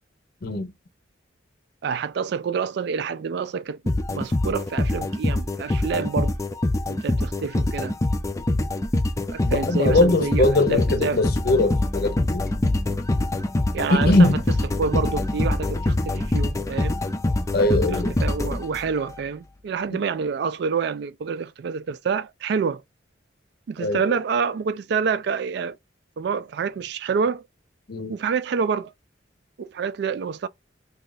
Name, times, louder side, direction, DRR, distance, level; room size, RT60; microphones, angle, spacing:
voice 1, 0.4-0.7 8.5-8.6 9.4-12.4 13.9-14.4 17.5-18.1 23.8-24.1 27.9-28.1, left 2 dB, 55° left, 0.6 m, -21 dB
voice 2, 1.8-6.3 6.9-7.9 9.3-11.2 13.7-14.3 14.8-17.0 17.6-22.8 23.7-25.8 26.2-27.4 28.1-28.9 29.6-30.5, right 6 dB, 60° right, 0.3 m, -27 dB
sound 1, 3.9-19.1, left 2 dB, 15° left, 0.3 m, -24 dB
2.7 x 2.4 x 3.8 m
head